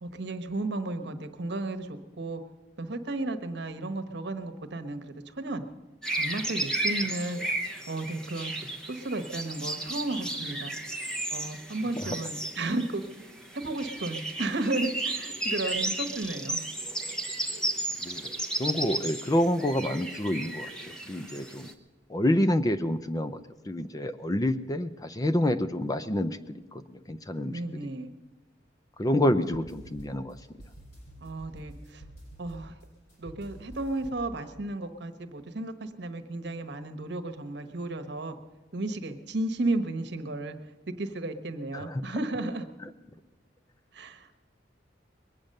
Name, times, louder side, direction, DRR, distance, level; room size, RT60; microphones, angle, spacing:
voice 1, 0.0-2.4 2.8-5.6 6.1-7.4 7.9-8.5 8.9-13.0 13.5-16.6 27.4-28.1 29.2-29.5 31.2-32.0 32.4-32.7 33.2-38.4 38.7-40.6 40.9-42.7 43.9-44.4, right 2 dB, 65° right, 8 dB, 1.2 m, -33 dB
sound 1, 6.0-21.7, right 2 dB, 5° left, 1.0 m, -34 dB
voice 2, 18.0-18.3 18.6-20.7 21.1-21.7 22.1-23.4 23.7-27.6 29.0-30.3 41.7-42.0, left 1 dB, 20° left, 10 dB, 0.5 m, -28 dB
sound 2, 29.4-34.7, equal, 60° left, 6.7 m, -48 dB
21.5 x 8.9 x 6.6 m, 1.2 s
head